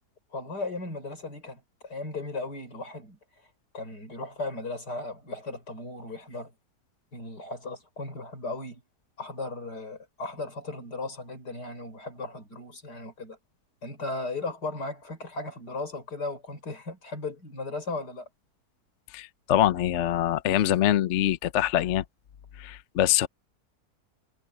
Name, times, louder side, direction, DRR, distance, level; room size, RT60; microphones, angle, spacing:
voice 1, 0.3-3.2 3.7-6.5 7.1-8.8 9.2-13.4 13.8-18.3, left 2 dB, 80° left, 6.0 m, -36 dB
voice 2, 19.1-22.0 22.6-23.3, left 12 dB, 60° left, 0.8 m, -24 dB
omnidirectional pair, 1.8 m